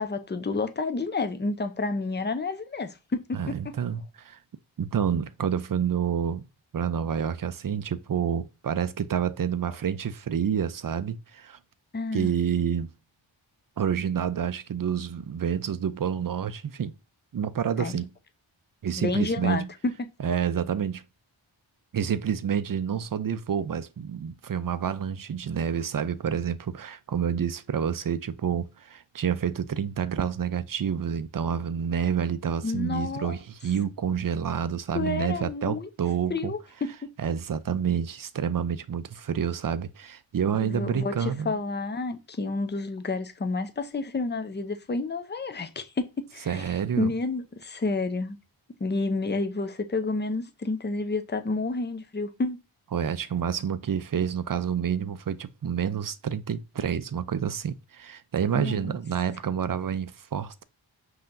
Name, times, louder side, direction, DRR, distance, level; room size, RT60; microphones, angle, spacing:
voice 1, 0.0-3.7 11.9-12.3 17.8-18.0 19.0-19.6 32.6-33.4 34.9-35.9 36.3-37.1 40.6-48.4 48.8-52.6 58.5-58.9, left 3 dB, 20° left, 0.6 m, -30 dB
voice 2, 3.3-4.4 4.8-6.5 6.7-11.6 12.1-12.9 13.8-16.9 17.3-18.1 18.8-19.7 20.2-21.0 21.9-36.5 37.2-41.6 46.5-47.1 52.9-60.6, right 8 dB, 45° right, 0.5 m, -28 dB
5.6 x 2.8 x 2.6 m
cardioid pair, 40°, 48 cm